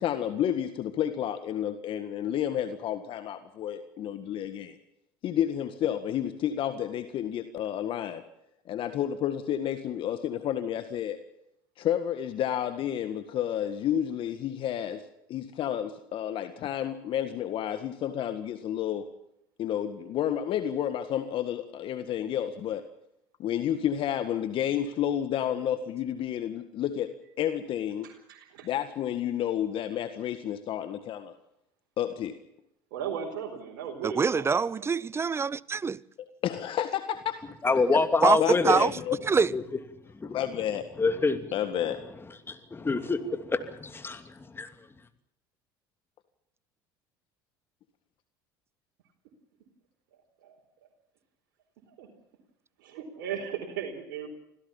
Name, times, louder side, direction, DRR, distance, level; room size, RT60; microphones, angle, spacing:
voice 1, 0.0-4.8 5.2-8.2 8.7-11.2 11.8-15.0 15.3-19.1 19.6-22.8 23.4-28.1 28.6-31.3 32.0-32.3 36.4-37.4 37.9-38.0 38.4-39.2 40.2-40.8 41.5-42.0, left 10 dB, 55° left, 1.8 m, -30 dB
voice 2, 28.0-28.7 32.9-34.9 50.4-50.6 51.9-52.1 52.8-54.3, right 8 dB, 75° right, 4.5 m, -37 dB
voice 3, 34.0-36.0 38.2-38.9 39.2-39.5, right 5 dB, 25° right, 0.8 m, -25 dB
voice 4, 37.6-38.8 39.5-39.6 40.2-40.4 41.0-41.5 42.5-44.7, left 4 dB, 20° left, 2.8 m, -26 dB
26.0 x 16.5 x 7.2 m
hypercardioid pair, 80°, 11 cm